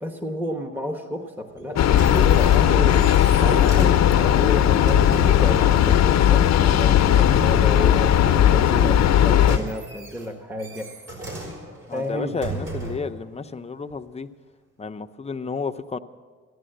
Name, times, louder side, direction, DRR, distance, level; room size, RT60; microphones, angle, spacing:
voice 1, 0.0-3.0 3.4-6.5 6.8-10.9 11.9-12.4, left 1 dB, 5° right, 5 dB, 1.1 m, -31 dB
sound 1, 1.6-5.6 9.0-13.2 13.9-14.0, right 2 dB, 50° right, 4.9 m, -36 dB
Train, 1.8-9.6, left 10 dB, 60° left, 0.7 m, -17 dB
voice 2, 11.9-14.3 14.8-16.0, left 4 dB, 20° left, 7 dB, 0.7 m, -31 dB
15.0 x 11.0 x 7.8 m, 1.5 s
cardioid pair, 90°, 30 cm